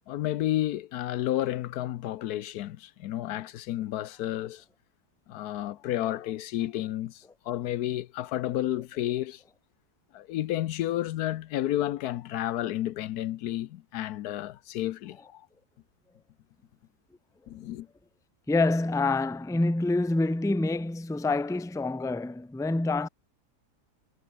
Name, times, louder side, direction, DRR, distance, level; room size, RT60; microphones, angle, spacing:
voice 1, 0.1-4.6 5.3-9.4 10.1-15.5 17.5-17.9, left 13 dB, 75° left, 1.1 m, -31 dB
voice 2, 18.5-23.1, left 2 dB, 5° left, 0.7 m, -27 dB
omnidirectional pair, 1.7 m